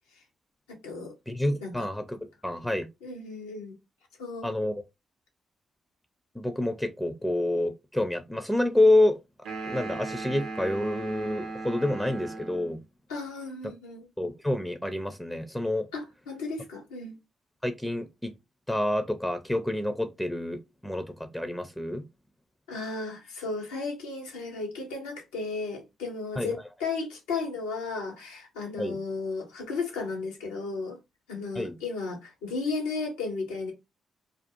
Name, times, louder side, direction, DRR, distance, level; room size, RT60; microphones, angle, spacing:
voice 1, 1.3-2.9 4.4-4.7 6.4-9.2 9.6-12.8 14.2-15.9 17.6-18.3 18.7-22.0 26.4-26.6 28.8-29.0 31.5-31.8, left 1 dB, 10° left, 0.4 m, -28 dB
voice 2, 3.0-3.8 4.2-4.5 13.1-14.1 15.9-17.2 22.7-31.0 31.3-33.7, left 4 dB, 90° left, 0.7 m, -34 dB
sound 1, 9.4-12.8, right 3 dB, 75° right, 0.5 m, -37 dB
2.4 x 2.3 x 2.6 m
hypercardioid pair, 45°, 0 cm